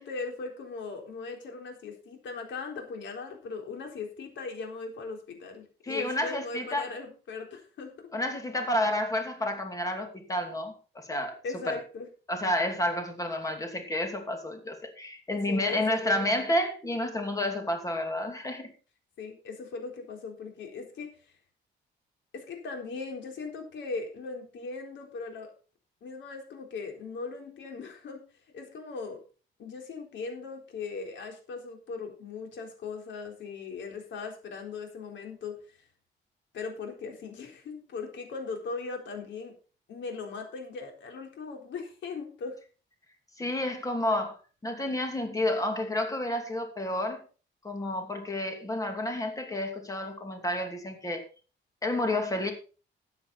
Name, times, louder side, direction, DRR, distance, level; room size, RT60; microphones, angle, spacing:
voice 1, 0.0-7.9 11.4-12.1 15.5-16.3 19.2-21.3 22.3-25.5 26.0-28.2 28.5-29.2 29.6-35.6 36.5-39.5 39.9-42.6, left 4 dB, 70° left, 3.9 m, -39 dB
voice 2, 5.8-6.9 8.1-11.4 11.7-11.8 12.3-18.7 43.4-44.4 44.6-47.2 47.6-51.2 51.8-52.5, left 1 dB, 15° left, 2.7 m, -30 dB
13.5 x 9.1 x 4.2 m
cardioid pair, 150°, 20 cm